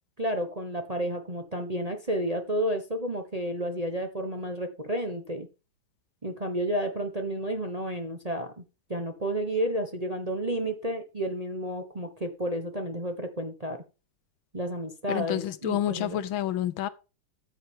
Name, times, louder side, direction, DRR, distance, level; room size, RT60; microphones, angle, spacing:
voice 1, 0.2-5.5 6.2-8.6 8.9-13.8 14.5-16.2, equal, 25° right, 1.0 m, -31 dB
voice 2, 15.1-16.9, left 11 dB, 75° left, 1.5 m, -29 dB
13.5 x 7.8 x 3.6 m
omnidirectional pair, 2.3 m